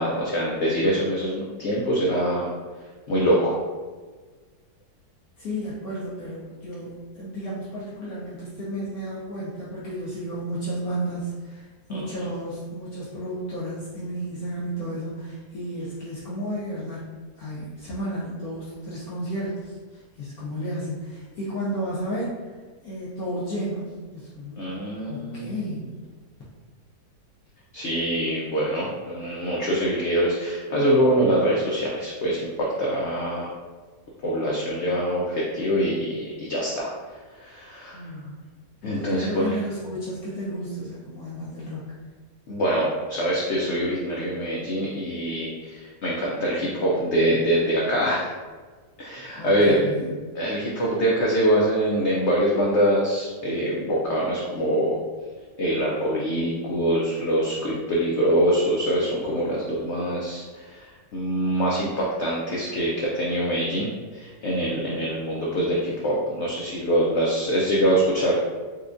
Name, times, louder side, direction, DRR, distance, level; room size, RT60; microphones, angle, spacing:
voice 1, 0.0-2.5 3.1-3.6 11.9-12.0 24.6-25.5 27.7-33.5 34.2-38.1 38.8-39.6 42.5-48.3 49.0-49.8 50.4-54.9 55.6-68.4, equal, 85° left, -4 dB, 0.6 m, -24 dB
voice 2, 5.4-17.0 17.4-22.3 22.8-24.7 25.0-25.9 37.9-38.3 38.8-41.8 49.3-50.1, equal, 65° left, -8 dB, 1.1 m, -32 dB
4.3 x 2.3 x 2.5 m, 1.4 s
omnidirectional pair, 1.8 m